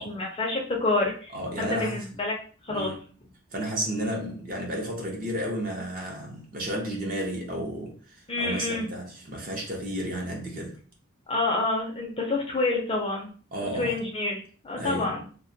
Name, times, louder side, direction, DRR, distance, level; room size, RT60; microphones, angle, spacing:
voice 1, 0.0-2.4 2.6-2.9 8.3-8.9 11.3-13.3 13.7-15.2, left 2 dB, 25° left, 0.5 m, -28 dB
voice 2, 1.3-2.0 2.7-3.0 3.5-10.8 13.5-14.0 14.8-15.2, equal, 40° right, 0.6 m, -32 dB
2.2 x 2.2 x 2.6 m
head